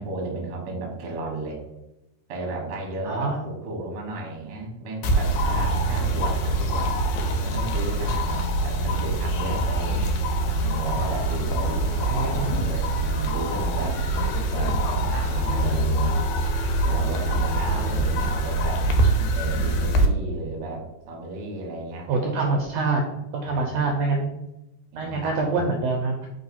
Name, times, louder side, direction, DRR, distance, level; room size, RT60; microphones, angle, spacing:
voice 1, 0.0-1.6 2.3-6.9 7.4-10.0 10.6-14.0 14.5-16.2 16.8-18.8 19.3-22.6 23.4-24.2 24.9-25.7, right 2 dB, 60° right, -1 dB, 1.1 m, -34 dB
voice 2, 3.0-3.4 11.7-12.5 17.7-18.2 22.1-23.0 23.3-24.3 25.0-26.3, right 3 dB, 80° right, 1 dB, 1.5 m, -26 dB
sound 1, 5.0-20.1, right 1 dB, 85° left, 2.0 m, -24 dB
4.2 x 3.0 x 4.1 m, 0.91 s
omnidirectional pair, 3.4 m